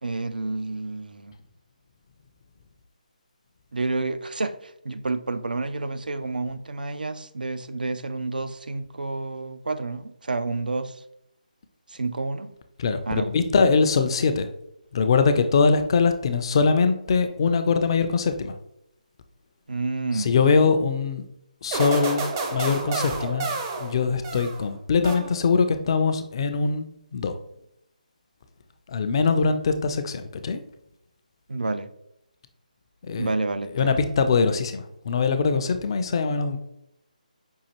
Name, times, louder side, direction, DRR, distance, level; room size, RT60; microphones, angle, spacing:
voice 1, 0.0-1.3 3.7-11.0 11.9-12.5 13.1-13.3 19.7-20.3 31.5-31.9 33.2-34.0, right 3 dB, 85° right, 0.4 m, -29 dB
voice 2, 12.8-14.5 14.9-18.6 20.1-21.2 21.6-22.2 22.5-23.5 23.8-26.9 27.1-27.4 28.9-30.6 33.0-33.3 33.6-36.6, left 5 dB, 35° left, 0.4 m, -22 dB
sound 1, 21.7-24.7 25.0-25.7, right 3 dB, 25° right, 0.5 m, -30 dB
5.4 x 2.4 x 2.9 m
figure-of-eight pair, 155°, 5 cm